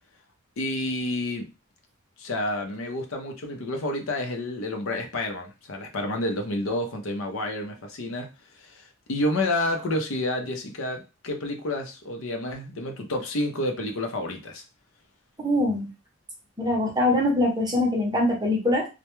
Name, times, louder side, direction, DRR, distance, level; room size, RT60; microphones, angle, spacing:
voice 1, 0.6-1.5 2.2-8.3 8.6-8.8 9.1-14.6, left 1 dB, 70° left, 4 dB, 0.5 m, -29 dB
voice 2, 15.4-15.9 16.6-18.9, left 1 dB, 20° right, -1 dB, 0.7 m, -23 dB
2.2 x 2.1 x 2.9 m, 0.28 s
head